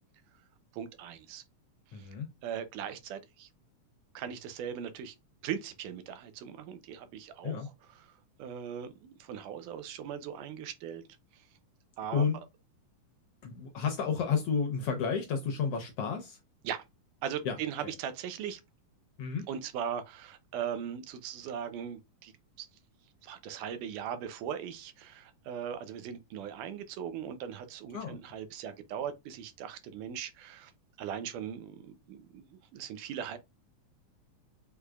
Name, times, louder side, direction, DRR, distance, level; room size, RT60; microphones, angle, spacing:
voice 1, 0.7-1.4 1.9-2.1 2.4-3.5 4.1-5.2 5.4-11.0 11.3-11.4 12.0-12.2 16.6-16.8 17.2-18.6 19.5-22.3 22.6-22.7 23.2-30.7 31.0-33.4, right 8 dB, 80° right, 2.3 m, -39 dB
voice 2, 1.9-2.3 7.4-7.7 12.1-12.4 13.4-16.4 17.4-17.6 17.8-17.9 19.2-19.5 27.9-28.2, left 6 dB, 75° left, 1.4 m, -31 dB
6.2 x 3.4 x 2.3 m
omnidirectional pair, 3.7 m